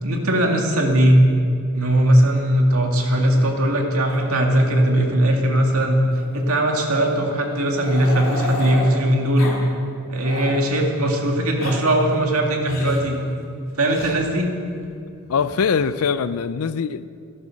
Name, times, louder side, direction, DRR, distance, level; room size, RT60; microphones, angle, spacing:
voice 1, 0.0-1.3 1.7-6.0 6.3-9.5 10.1-13.2 13.8-14.6, right 1 dB, 80° right, 2.2 m, -19 dB
Growling, 1.9-3.8 4.1-4.2 4.5-4.7 5.0-5.1 6.1-9.0 9.3-9.6 9.9-10.6 11.3-11.8 12.6-13.1 13.9-14.1 15.3-15.9, left 2 dB, 65° left, 2.8 m, -34 dB
voice 2, 15.3-17.1, left 6 dB, 85° left, 0.4 m, -22 dB
14.0 x 12.5 x 6.4 m
head